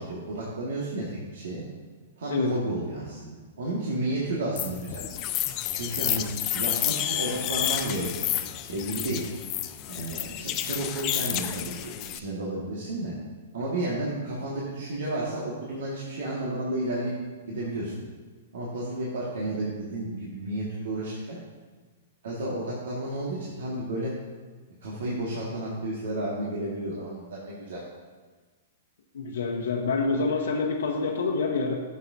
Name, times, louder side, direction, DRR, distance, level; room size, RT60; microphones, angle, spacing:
voice 1, 0.0-1.6 2.2-5.0 5.7-6.2 6.5-8.3 8.6-9.2 9.9-13.1 13.5-17.1 17.5-18.0 18.5-21.4 22.2-24.1 24.8-27.8, right 1 dB, 75° right, -5 dB, 1.8 m, -32 dB
sound 1, 4.6-12.2, left 13 dB, 35° left, 0.5 m, -30 dB
voice 2, 29.1-31.8, left 4 dB, 80° left, -1 dB, 1.0 m, -27 dB
11.5 x 7.3 x 2.7 m, 1.4 s
hypercardioid pair, 135°, 0 cm